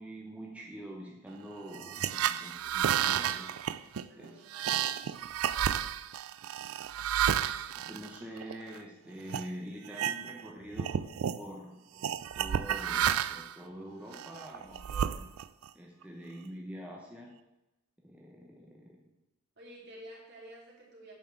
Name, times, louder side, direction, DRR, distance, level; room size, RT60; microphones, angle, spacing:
voice 1, 0.0-3.6 4.2-4.4 7.8-11.1 11.4-15.4 15.7-17.3 18.0-19.1, equal, 5° right, -2 dB, 0.9 m, -45 dB
sound 1, 1.7-8.8 9.3-9.5 9.9-10.5 10.7-11.4 12.0-13.5 14.1-15.7, right 9 dB, 85° right, 0.4 m, -31 dB
voice 2, 4.1-5.1 19.6-21.1, right 1 dB, 50° right, -4 dB, 3.2 m, -51 dB
8.9 x 5.5 x 7.2 m, 0.97 s
head